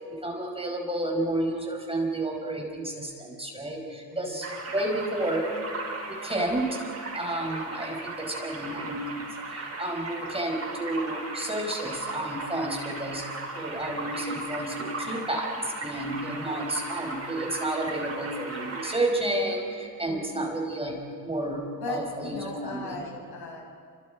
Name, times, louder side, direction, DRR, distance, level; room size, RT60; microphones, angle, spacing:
voice 1, 0.0-5.7 6.1-13.3 13.5-23.0, right 1 dB, 15° right, 1 dB, 5.4 m, -31 dB
sound 1, 4.4-19.0, right 3 dB, 40° right, 6.6 m, -37 dB
voice 2, 16.3-16.7 20.1-20.2 21.8-23.6, left 2 dB, 65° left, -1 dB, 7.9 m, -37 dB
29.0 x 27.5 x 5.1 m, 2.2 s
cardioid pair, 110°, 40 cm